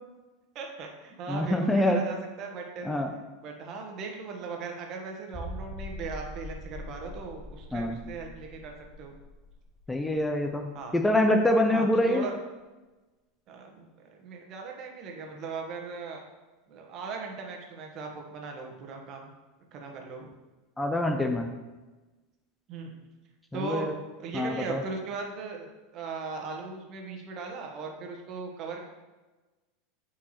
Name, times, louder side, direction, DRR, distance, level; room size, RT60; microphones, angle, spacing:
voice 1, 0.5-2.9 3.4-9.1 10.7-10.9 11.7-12.4 13.5-16.2 16.7-19.3 19.7-20.3 22.7-22.9 23.5-23.9 24.2-25.7 25.9-28.8, right 4 dB, 45° right, 2 dB, 1.3 m, -38 dB
voice 2, 1.3-2.0 2.8-3.1 7.7-8.0 9.9-12.3 20.8-21.5 23.5-23.9 24.3-24.8, left 1 dB, 10° left, 4 dB, 0.6 m, -25 dB
sound 1, 5.3-10.8 11.1-11.2 11.7-11.8, equal, 10° right, 1.1 m, -42 dB
8.1 x 4.6 x 3.1 m, 1.2 s
hypercardioid pair, 95°, 0 cm